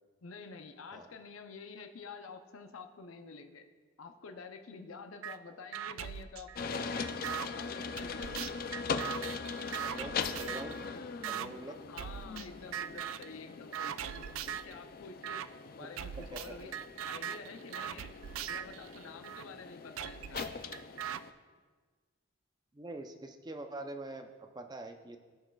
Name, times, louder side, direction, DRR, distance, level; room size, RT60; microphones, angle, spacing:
voice 1, 0.2-3.6 4.0-7.2 7.5-8.5 11.6-15.4 15.7-16.7 17.0-18.1 18.5-20.4, left 4 dB, 85° left, 6 dB, 0.6 m, -49 dB
sound 1, 5.2-5.4 5.7-7.5 8.0-10.8 11.2-11.5 12.0-12.5 12.7-13.3 13.7-14.7 15.2-15.5 16.0-19.4 20.0-21.2, right 10 dB, 80° right, 0.3 m, -40 dB
sound 2, 6.6-21.3, left 5 dB, 45° left, 0.3 m, -41 dB
voice 2, 9.8-10.8 11.3-11.8 16.2-16.4 22.7-25.2, right 2 dB, 20° right, 5 dB, 0.5 m, -44 dB
16.0 x 6.3 x 2.3 m, 1.4 s
head